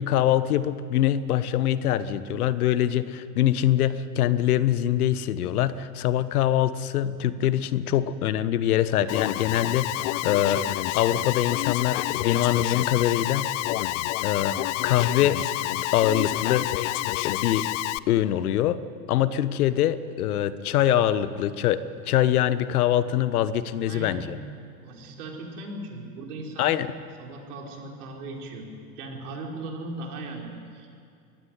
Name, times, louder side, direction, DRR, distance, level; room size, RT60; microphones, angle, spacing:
voice 1, 0.0-10.7 10.9-13.5 14.2-15.4 15.9-16.7 17.2-17.6 18.1-18.8 19.1-21.8 22.1-24.4 26.6-26.9, left 12 dB, 70° left, 15 dB, 1.2 m, -24 dB
Alarm, 9.1-18.0, left 18 dB, 50° left, 0.7 m, -28 dB
voice 2, 23.9-24.5 24.8-26.8 27.2-30.9, right 2 dB, 70° right, 1 dB, 4.8 m, -38 dB
23.0 x 15.5 x 9.6 m, 2.4 s
hypercardioid pair, 90°, 46 cm